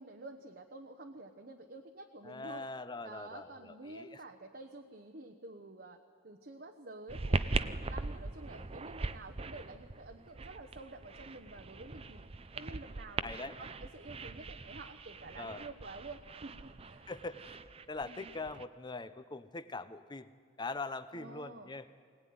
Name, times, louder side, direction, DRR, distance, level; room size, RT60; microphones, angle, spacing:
voice 1, 0.0-2.7 3.0-6.0 6.2-12.2 12.5-17.0 18.0-18.3 21.1-21.7, right 2 dB, 55° right, 3 dB, 1.1 m, -49 dB
voice 2, 2.2-4.2 13.2-13.5 15.4-15.6 17.1-17.6 17.9-20.3 20.6-21.9, left 3 dB, 25° left, 12 dB, 0.8 m, -42 dB
sound 1, 7.1-18.6, right 3 dB, 30° right, 0.6 m, -40 dB
22.5 x 18.0 x 9.5 m, 2.1 s
head